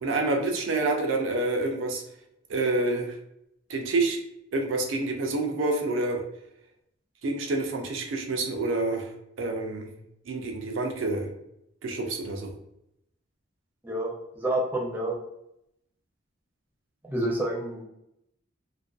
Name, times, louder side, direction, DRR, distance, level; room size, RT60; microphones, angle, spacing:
voice 1, 0.0-2.0 2.5-3.2 3.7-4.2 4.5-6.2 7.2-9.1 9.4-9.9 10.3-11.3 11.8-12.5, right 2 dB, 65° right, 3 dB, 0.4 m, -27 dB
voice 2, 13.8-15.1 17.0-17.8, right 1 dB, 10° right, -3 dB, 0.5 m, -29 dB
2.5 x 2.2 x 2.3 m, 0.80 s
head